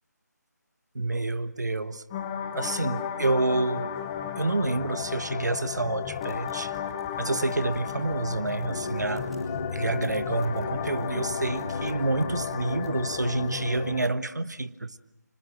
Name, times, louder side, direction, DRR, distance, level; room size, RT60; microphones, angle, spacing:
voice 1, 0.9-2.0 2.5-4.0 4.4-6.7 7.2-9.3 9.7-15.0, right 2 dB, 70° right, 1.3 m, -28 dB
sound 1, 2.1-14.1, left 9 dB, 15° left, 0.8 m, -34 dB
sound 2, 6.0-14.0, left 2 dB, ahead, 3.4 m, -51 dB
sound 3, 8.7-14.0, left 2 dB, 75° left, 2.5 m, -36 dB
30.0 x 26.0 x 6.2 m
figure-of-eight pair, 155°, 10 cm